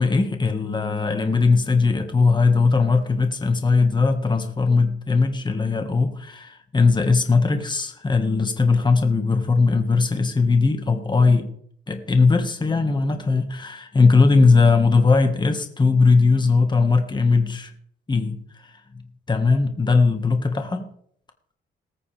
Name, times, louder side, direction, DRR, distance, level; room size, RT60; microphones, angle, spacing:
voice 1, 0.0-11.5 11.9-17.7 18.1-18.7 19.3-20.9, left 4 dB, 20° left, 5 dB, 1.8 m, -19 dB
19.5 x 8.7 x 3.5 m, 0.64 s
cardioid pair, 90°, 20 cm